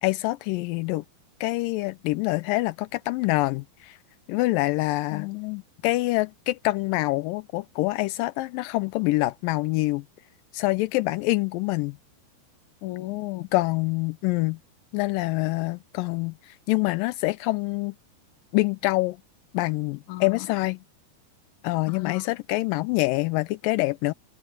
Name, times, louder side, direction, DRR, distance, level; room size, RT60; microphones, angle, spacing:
voice 1, 0.0-1.0 1.4-4.0 4.3-5.3 5.8-10.0 10.5-12.0 13.5-14.6 14.9-17.9 18.5-19.2 19.5-20.8 21.6-24.1, left 20 dB, 90° left, 1.9 m, -25 dB
voice 2, 5.1-5.6 12.8-13.5 20.1-20.7 21.9-22.2, left 21 dB, 75° left, 1.8 m, -34 dB
open air
omnidirectional pair, 4.5 m